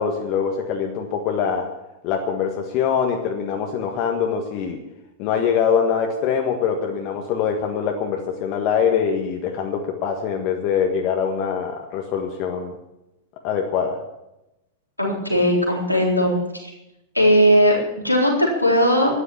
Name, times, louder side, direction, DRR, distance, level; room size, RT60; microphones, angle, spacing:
voice 1, 0.0-1.7 2.0-4.8 5.2-12.7 13.4-14.0, left 7 dB, 45° left, 2 dB, 1.6 m, -23 dB
voice 2, 15.0-16.3 16.6-16.7 17.1-19.1, equal, 90° left, -2 dB, 3.8 m, -18 dB
13.0 x 10.5 x 7.2 m, 0.92 s
figure-of-eight pair, 90°, 0 cm